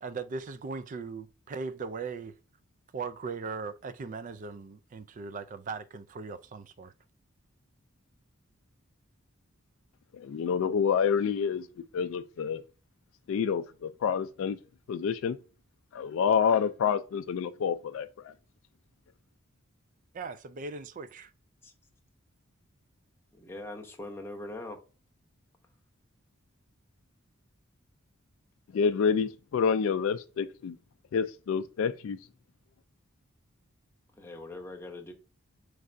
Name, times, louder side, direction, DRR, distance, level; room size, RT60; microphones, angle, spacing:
voice 1, 0.0-2.3 2.9-6.9 20.1-21.3, right 4 dB, 40° right, 0.3 m, -39 dB
voice 2, 10.1-11.7 11.9-12.6 13.3-14.6 14.9-15.4 15.9-18.3 28.7-30.8 31.1-32.2, left 6 dB, 65° left, 0.3 m, -28 dB
voice 3, 23.3-24.8 34.2-35.1, left 2 dB, 10° left, 0.7 m, -41 dB
4.7 x 3.2 x 2.6 m
head